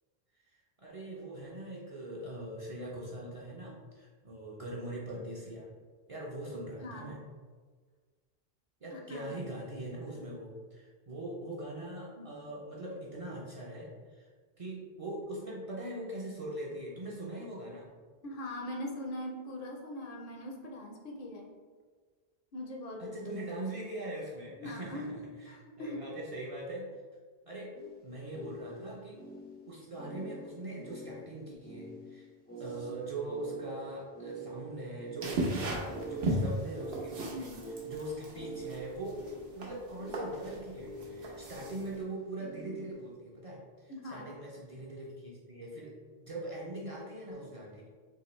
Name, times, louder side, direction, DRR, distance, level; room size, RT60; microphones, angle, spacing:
voice 1, 0.4-5.7 6.1-7.2 8.8-14.3 14.6-17.9 23.0-26.9 27.5-27.7 28.0-29.2 29.7-32.3 32.6-37.5 37.8-39.2 39.6-47.9, right 1 dB, 45° right, -5 dB, 0.5 m, -42 dB
voice 2, 6.5-7.2 8.9-9.3 18.2-21.6 22.5-23.3 24.6-26.1 37.2-37.7 43.9-44.4, left 1 dB, 65° left, 1 dB, 0.7 m, -42 dB
sound 1, 27.7-43.1, right 3 dB, 15° left, 0.4 m, -45 dB
sound 2, 35.2-42.0, right 1 dB, 75° right, 0.9 m, -36 dB
3.7 x 2.6 x 3.0 m, 1.5 s
omnidirectional pair, 1.0 m